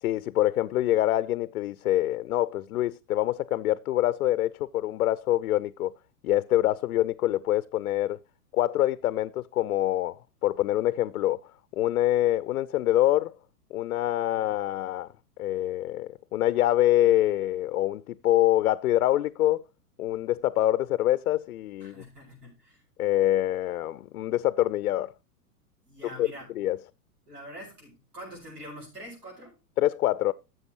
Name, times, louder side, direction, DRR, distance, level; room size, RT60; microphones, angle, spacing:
voice 1, 0.0-5.9 6.2-8.2 8.5-11.4 11.7-13.3 13.7-15.1 15.4-19.6 20.0-22.0 23.0-25.1 26.2-26.3 26.6-26.8 29.8-30.3, left 14 dB, 70° left, 0.5 m, -25 dB
voice 2, 21.8-22.8 25.8-26.5 27.3-29.5, equal, 75° right, 6.8 m, -45 dB
13.0 x 7.5 x 3.0 m
figure-of-eight pair, 105°, 46 cm